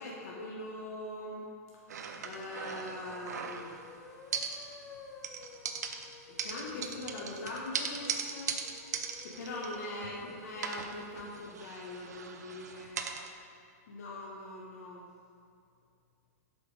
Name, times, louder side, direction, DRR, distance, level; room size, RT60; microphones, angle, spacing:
voice 1, 0.0-1.4 2.2-3.8 6.4-8.6 9.2-13.0 13.9-15.1, left 1 dB, 75° left, -4 dB, 1.2 m, -42 dB
sound 1, 1.9-3.9 4.3-5.0 5.2-10.2 10.6-13.3, right 6 dB, 90° right, 0.7 m, -39 dB
sound 2, 3.3-11.5, left 5 dB, 20° left, 0.6 m, -53 dB
7.8 x 5.3 x 4.8 m, 2.3 s
hypercardioid pair, 145°, 9 cm